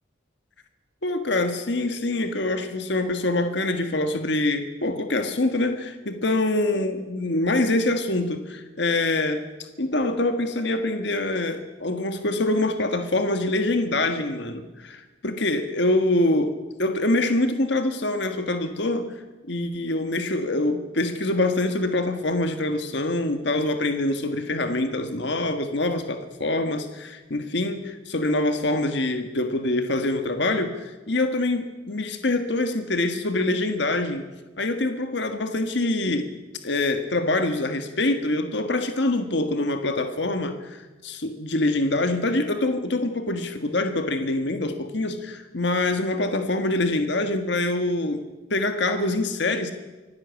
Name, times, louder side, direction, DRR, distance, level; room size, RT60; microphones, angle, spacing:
voice 1, 1.0-9.4 9.8-16.5 16.8-19.2 19.5-34.2 34.6-36.3 36.6-48.2 48.5-49.7, left 2 dB, 60° left, 7 dB, 1.6 m, -25 dB
25.0 x 16.5 x 8.3 m, 1.2 s
head